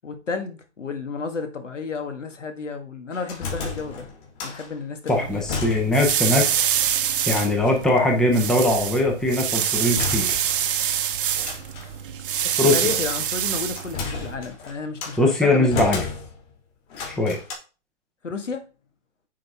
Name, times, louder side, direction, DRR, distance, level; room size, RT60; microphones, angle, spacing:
voice 1, 0.0-4.1 4.4-5.4 12.4-16.0 18.2-18.6, left 4 dB, 90° left, 1.7 m, -32 dB
sound 1, 3.1-4.7 5.1-6.2 6.5-6.6 7.2-7.9 9.7-10.8 11.4-12.0 13.1-15.2 15.7-16.5 16.9-17.5, left 5 dB, 40° left, 3.0 m, -33 dB
voice 2, 5.1-6.5 7.2-10.4 12.6-12.9 15.2-16.0 17.2-17.4, left 2 dB, ahead, 0.6 m, -21 dB
sound 2, 5.1-14.3, right 10 dB, 45° right, 0.9 m, -26 dB
9.2 x 3.9 x 3.5 m
hypercardioid pair, 140°, 36 cm